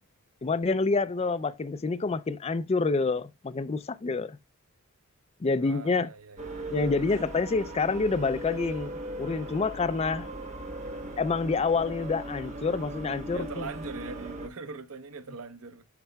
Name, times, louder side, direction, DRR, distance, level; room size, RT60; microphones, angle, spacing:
voice 1, 0.4-4.4 5.4-6.1 6.7-10.3 11.2-13.7, left 4 dB, 30° left, 0.4 m, -27 dB
voice 2, 5.6-6.7 13.3-15.8, right 4 dB, 75° right, 0.8 m, -41 dB
sound 1, 6.4-14.5, right 1 dB, 35° right, 1.2 m, -38 dB
11.5 x 5.5 x 2.2 m
head